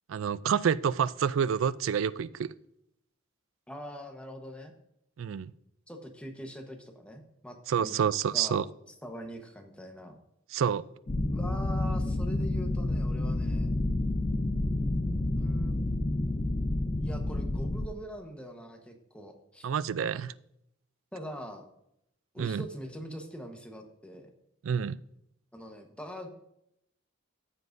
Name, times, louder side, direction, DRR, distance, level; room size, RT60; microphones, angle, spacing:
voice 1, 0.1-2.5 5.2-5.5 7.7-8.6 10.5-10.8 19.6-20.3 22.4-22.6 24.6-25.0, right 7 dB, 75° right, 0.4 m, -28 dB
voice 2, 3.7-4.7 5.9-8.6 9.0-10.2 11.3-13.7 15.3-15.8 17.0-19.7 21.1-21.6 22.3-24.3 25.5-26.3, equal, 5° left, 1.1 m, -43 dB
sound 1, 11.1-17.9, left 1 dB, 35° left, 0.5 m, -29 dB
14.5 x 7.6 x 2.6 m
head